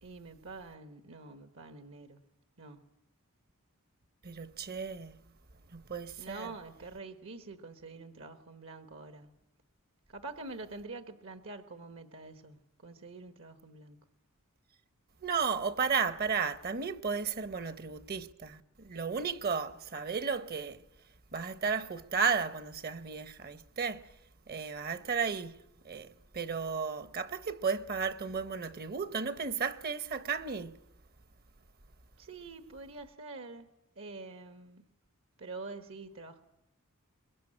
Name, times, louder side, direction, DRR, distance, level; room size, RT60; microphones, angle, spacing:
voice 1, 0.0-2.2 2.6-2.8 6.2-9.3 10.1-14.0 32.2-33.7 34.0-34.9 35.4-36.4, right 3 dB, 65° right, 1.3 m, -46 dB
voice 2, 4.2-5.2 5.7-6.5 15.2-20.8 21.3-24.1 24.5-25.6 25.8-30.8, right 5 dB, 45° right, 0.9 m, -34 dB
23.0 x 21.5 x 8.8 m
head